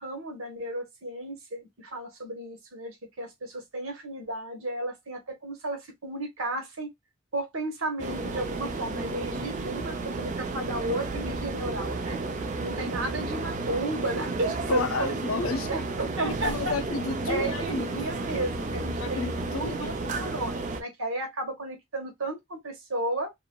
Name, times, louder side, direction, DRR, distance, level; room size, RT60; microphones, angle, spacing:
voice 1, 0.0-6.9 7.3-12.2 12.6-15.2 15.7-16.7 17.3-23.3, right 2 dB, 80° right, 1.2 m, -33 dB
sound 1, 8.0-20.8, right 3 dB, 35° right, 0.4 m, -32 dB
voice 2, 14.7-15.7 16.2-18.0 19.0-20.0, left 4 dB, 85° left, 0.5 m, -32 dB
2.9 x 2.5 x 2.3 m
head